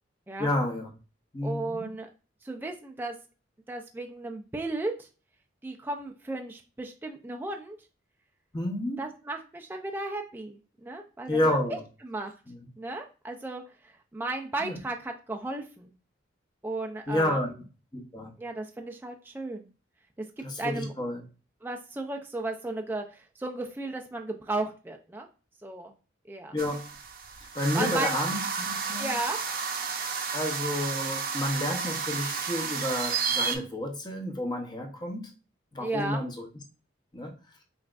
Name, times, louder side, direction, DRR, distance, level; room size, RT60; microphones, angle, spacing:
voice 1, 0.4-0.9 1.3-1.9 8.5-9.0 11.3-11.8 12.5-12.6 14.6-14.8 17.1-17.5 17.9-18.3 20.4-21.2 26.5-26.9 27.5-29.2 30.3-35.3 35.7-36.5 37.1-37.3, left 1 dB, 20° left, 2 dB, 0.7 m, -30 dB
voice 2, 1.4-2.1 2.4-3.1 3.7-5.1 5.6-7.8 9.0-11.4 11.7-11.8 12.0-12.3 12.8-15.9 16.6-17.4 18.4-19.7 20.4-20.9 21.6-25.3 25.6-25.9 26.3-26.6 27.7-28.2 29.0-29.4 35.8-36.2, right 2 dB, 10° right, 3 dB, 0.3 m, -35 dB
sound 1, 26.6-33.6, right 5 dB, 50° right, 0.6 m, -32 dB
5.6 x 2.4 x 2.4 m, 0.35 s
head